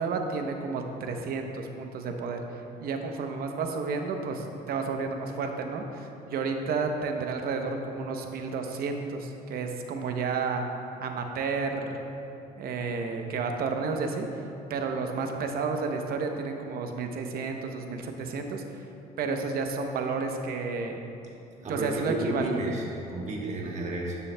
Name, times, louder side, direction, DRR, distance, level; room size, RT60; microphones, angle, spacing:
voice 1, 0.0-2.4 2.8-10.6 11.0-12.0 12.6-14.3 14.7-18.6 19.2-21.0 21.7-22.6, right 4 dB, 65° right, 4 dB, 0.8 m, -31 dB
voice 2, 21.6-22.8 23.1-24.2, right 1 dB, 45° right, -2 dB, 1.2 m, -32 dB
12.5 x 7.0 x 2.2 m, 2.8 s
cardioid pair, 110°, 17 cm